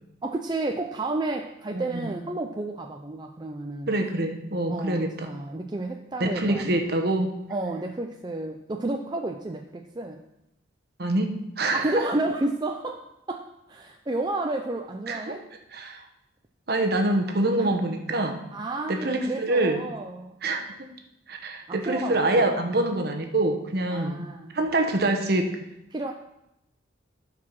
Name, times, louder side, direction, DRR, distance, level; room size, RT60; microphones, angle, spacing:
voice 1, 0.2-3.9 4.7-7.0 7.5-10.2 11.7-15.5 17.6-17.7 18.5-20.4 21.7-22.5 23.9-24.6 25.9-26.1, right 2 dB, 20° right, 3 dB, 0.4 m, -31 dB
voice 2, 1.7-2.1 3.9-5.3 6.2-7.3 11.0-12.0 15.1-15.4 15.7-16.0 16.7-18.4 18.9-19.8 20.4-20.6 21.3-24.3 24.5-25.6, right 2 dB, 50° right, 4 dB, 1.1 m, -25 dB
12.0 x 4.8 x 6.0 m, 0.87 s
head